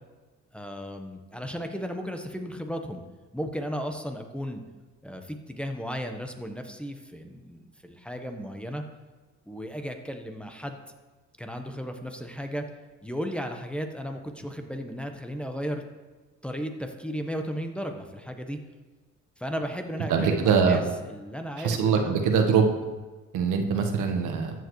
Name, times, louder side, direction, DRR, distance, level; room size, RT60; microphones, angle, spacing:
voice 1, 0.5-3.0 3.3-4.6 5.0-8.8 9.5-10.8 11.4-12.6 13.0-15.8 16.4-18.6 19.4-22.2, equal, 5° left, 4 dB, 1.0 m, -35 dB
voice 2, 20.1-20.8 21.6-22.7 23.3-24.5, right 6 dB, 80° right, 4 dB, 1.3 m, -23 dB
14.0 x 7.4 x 3.2 m, 1.3 s
cardioid pair, 90°, 30 cm